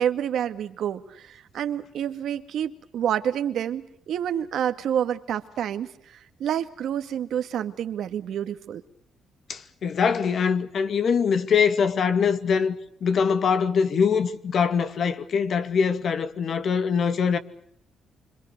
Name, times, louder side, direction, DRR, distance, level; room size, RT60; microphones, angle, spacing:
voice 1, 0.0-8.8, right 9 dB, 75° right, 1.9 m, -28 dB
voice 2, 9.5-12.8 13.0-17.4, left 6 dB, 55° left, 2.4 m, -23 dB
26.5 x 25.5 x 6.6 m
cardioid pair, 90°, 0 cm